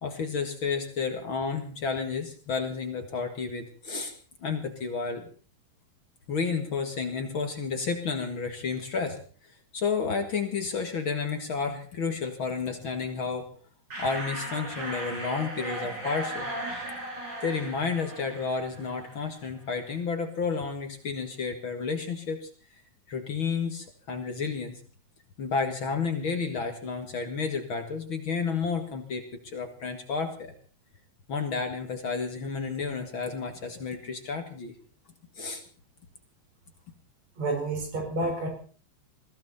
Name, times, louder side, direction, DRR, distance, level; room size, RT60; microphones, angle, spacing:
voice 1, 0.0-4.1 4.4-5.3 6.3-9.2 9.7-13.5 14.0-16.5 17.4-22.5 23.1-24.8 25.4-30.5 31.3-34.7 35.4-35.6, left 5 dB, 45° left, 6 dB, 2.5 m, -31 dB
sound 1, 13.9-19.4, right 1 dB, 35° right, 6.3 m, -37 dB
voice 2, 37.4-38.5, right 2 dB, 65° right, 3 dB, 6.0 m, -29 dB
21.0 x 16.0 x 4.2 m, 0.41 s
omnidirectional pair, 3.4 m